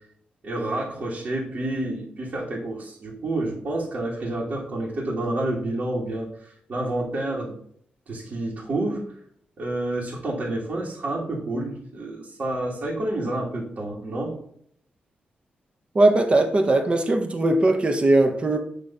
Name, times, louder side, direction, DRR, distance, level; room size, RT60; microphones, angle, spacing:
voice 1, 0.4-7.6 8.1-9.0 9.6-14.3, right 1 dB, 50° right, -5 dB, 1.7 m, -29 dB
voice 2, 15.9-18.6, right 2 dB, 35° right, 6 dB, 0.8 m, -19 dB
8.9 x 3.1 x 4.1 m, 0.66 s
wide cardioid pair, 110°, 3 cm